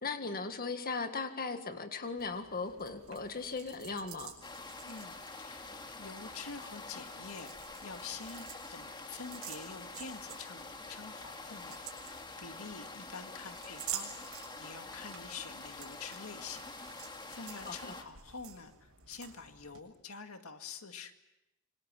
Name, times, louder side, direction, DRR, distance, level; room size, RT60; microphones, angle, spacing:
voice 1, 0.0-4.4 17.7-18.0, left 4 dB, 45° left, 7 dB, 1.8 m, -38 dB
sound 1, 2.2-19.8, right 10 dB, 75° right, 7.1 m, -50 dB
sound 2, 4.4-18.0, left 3 dB, 20° left, 2.1 m, -47 dB
voice 2, 4.8-16.6 17.0-21.1, left 5 dB, 80° left, 6 dB, 2.0 m, -47 dB
27.0 x 25.5 x 7.6 m, 0.93 s
head